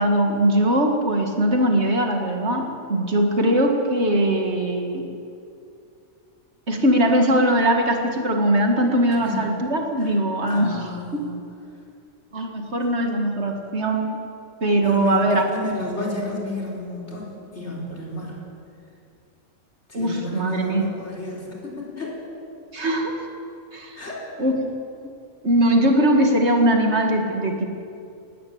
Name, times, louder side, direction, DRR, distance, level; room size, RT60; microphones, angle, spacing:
voice 1, 0.0-5.1 6.7-11.2 12.3-14.2 14.6-15.4 19.9-20.8 22.7-23.1 23.7-24.0 24.4-24.6 25.4-27.6, right 1 dB, 55° right, 3 dB, 2.3 m, -21 dB
voice 2, 10.5-11.4 14.8-15.2 15.5-18.4 19.9-22.2 24.0-24.2, left 2 dB, 60° left, -3 dB, 4.9 m, -31 dB
19.0 x 16.0 x 8.8 m, 2.6 s
omnidirectional pair, 1.3 m